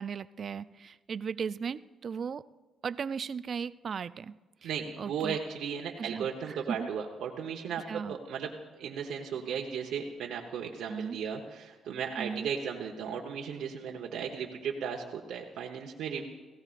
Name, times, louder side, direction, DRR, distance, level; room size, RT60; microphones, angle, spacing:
voice 1, 0.0-2.5 2.8-4.3 4.6-4.7 5.0-5.4 6.0-6.9 7.9-8.2 10.9-11.2 12.2-12.5, right 6 dB, 50° right, 16 dB, 0.3 m, -36 dB
voice 2, 4.6-8.5 8.8-16.4, right 7 dB, 80° right, 0 dB, 1.0 m, -36 dB
18.0 x 16.5 x 2.5 m, 1.3 s
cardioid pair, 90°, 0 cm